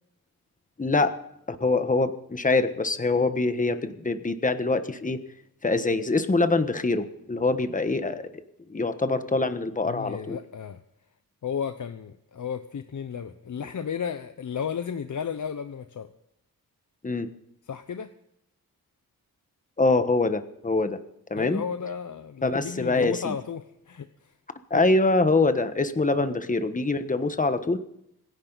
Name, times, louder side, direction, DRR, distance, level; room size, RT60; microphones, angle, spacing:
voice 1, 0.8-1.2 1.5-5.2 5.6-8.3 8.7-10.4 17.0-17.3 19.8-21.0 21.3-21.6 22.4-23.3 24.7-27.8, left 3 dB, 20° left, 10 dB, 1.3 m, -24 dB
voice 2, 9.8-10.8 11.4-16.1 17.7-18.1 21.4-24.3 24.7-24.8, left 7 dB, 55° left, 9 dB, 0.9 m, -33 dB
26.5 x 10.5 x 4.1 m, 0.78 s
wide cardioid pair, 95°, 36 cm